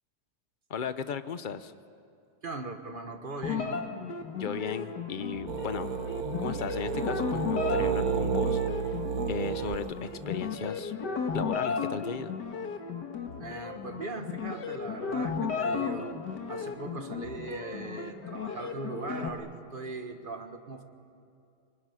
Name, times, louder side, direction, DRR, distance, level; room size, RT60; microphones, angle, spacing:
voice 1, 0.7-1.7 4.3-6.0 6.4-8.8 9.3-10.9 11.3-12.3, left 6 dB, 40° left, 12 dB, 0.7 m, -36 dB
voice 2, 2.4-3.9 13.4-16.1 16.5-20.8, right 3 dB, 35° right, 6 dB, 1.5 m, -39 dB
sound 1, 3.4-19.3, left 5 dB, 85° left, 2.2 m, -35 dB
sound 2, 5.5-10.6, right 7 dB, 65° right, 1.3 m, -31 dB
25.0 x 21.5 x 9.9 m, 2.5 s
omnidirectional pair, 1.8 m